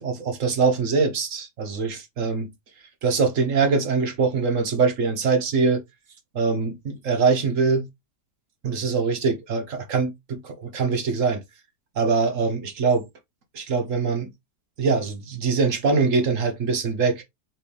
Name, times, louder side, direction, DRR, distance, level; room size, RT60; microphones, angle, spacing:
voice 1, 0.0-2.5 3.0-5.8 6.3-7.9 8.6-11.4 12.0-13.1 13.5-14.3 14.8-17.2, right 4 dB, 55° right, 1.2 m, -23 dB
4.4 x 3.4 x 3.3 m
omnidirectional pair, 1.8 m